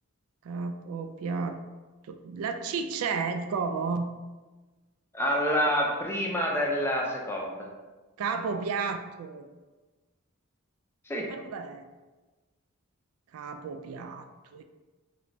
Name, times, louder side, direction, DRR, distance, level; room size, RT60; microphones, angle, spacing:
voice 1, 0.4-1.6 2.0-4.1 8.2-9.5 11.3-11.8 13.3-14.6, right 5 dB, 80° right, 7 dB, 0.3 m, -32 dB
voice 2, 5.1-7.7 11.1-11.3, equal, 10° left, -1 dB, 0.4 m, -27 dB
3.2 x 2.9 x 2.6 m, 1.2 s
head